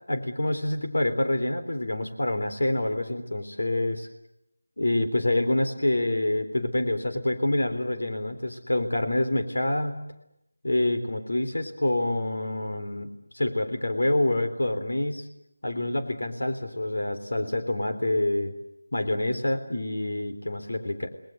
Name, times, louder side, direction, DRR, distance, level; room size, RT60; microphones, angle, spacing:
voice 1, 0.1-4.1 4.8-10.0 10.6-13.1 13.3-15.3 15.6-18.5 18.9-21.1, left 1 dB, 60° left, 5 dB, 3.6 m, -27 dB
29.5 x 20.0 x 8.0 m, 0.80 s
figure-of-eight pair, 180°, 0 cm